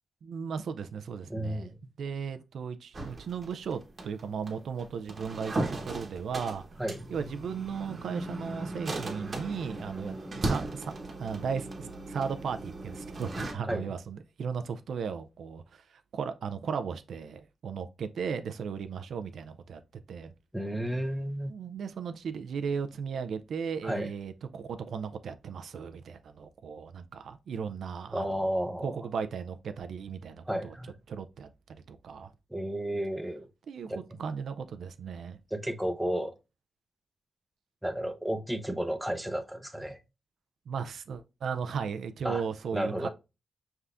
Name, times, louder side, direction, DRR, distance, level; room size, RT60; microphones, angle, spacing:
voice 1, 0.2-1.7 2.0-6.8 7.1-10.9 11.2-15.8 16.1-19.8 20.1-20.3 21.5-28.4 28.8-30.7 31.1-31.5 31.9-32.3 33.7-35.4 40.7-43.1, right 6 dB, 80° right, 0.4 m, -36 dB
voice 2, 1.3-1.8 6.8-7.1 13.6-13.9 20.5-21.5 23.8-24.1 28.1-29.0 30.5-30.9 32.5-33.5 33.9-34.0 35.5-36.3 37.8-40.0 42.2-42.4 42.7-43.1, equal, 5° right, 0.7 m, -32 dB
sound 1, 2.9-13.5, right 2 dB, 45° right, 1.0 m, -37 dB
5.4 x 3.4 x 2.4 m
cardioid pair, 85°, 0 cm